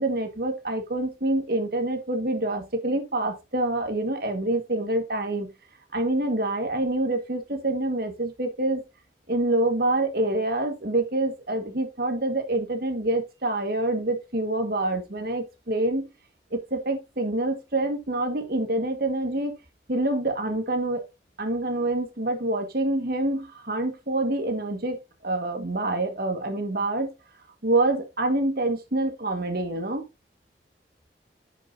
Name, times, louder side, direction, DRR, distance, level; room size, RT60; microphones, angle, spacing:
voice 1, 0.0-5.5 5.9-8.8 9.3-16.1 16.5-19.6 19.9-21.0 21.4-25.0 25.2-27.1 27.6-30.1, right 2 dB, 60° right, 1.8 m, -26 dB
10.5 x 6.1 x 2.7 m
head